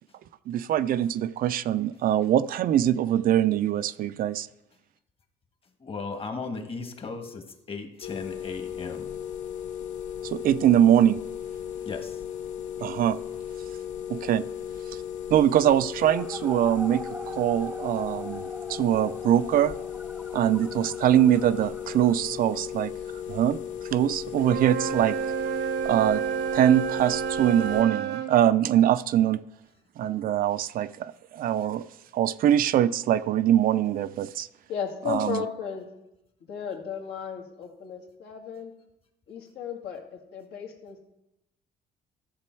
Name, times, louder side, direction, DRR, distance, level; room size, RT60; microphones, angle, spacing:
voice 1, 0.5-4.5 10.2-11.2 12.8-13.2 14.1-14.4 15.3-18.4 18.7-19.7 20.3-22.9 23.3-23.6 23.9-25.2 25.8-26.2 26.5-29.4 30.0-31.8 32.1-34.5 35.1-35.4, right 11 dB, 55° right, 14 dB, 0.5 m, -23 dB
voice 2, 5.8-9.1 11.8-12.2, left 4 dB, 35° left, 6 dB, 1.5 m, -36 dB
sound 1, 8.0-27.8, left 9 dB, 50° left, 0.6 m, -36 dB
sound 2, 16.0-22.1, right 1 dB, 5° right, 0.6 m, -43 dB
Wind instrument woodwind instrument, 24.4-28.4, right 9 dB, 85° right, 1.0 m, -30 dB
voice 3, 34.7-35.9 36.4-38.7 39.3-41.1, left 7 dB, 75° left, 2 dB, 2.0 m, -35 dB
14.0 x 7.0 x 4.5 m, 0.89 s
cardioid pair, 110°, 17 cm